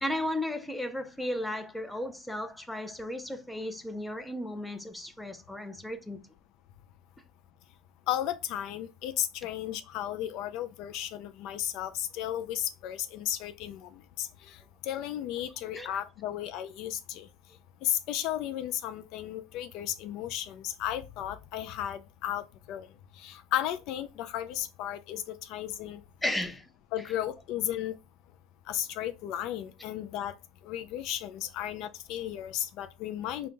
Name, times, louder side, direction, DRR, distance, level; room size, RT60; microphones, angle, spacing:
voice 1, 0.0-6.2 15.7-15.9 26.2-26.7, left 1 dB, 5° left, 0.6 m, -34 dB
voice 2, 8.1-17.3 17.8-22.9 23.2-26.0 26.9-27.9 28.7-30.3 30.6-33.5, left 12 dB, 65° left, 0.3 m, -34 dB
3.6 x 2.2 x 3.8 m
supercardioid pair, 100°, 0 cm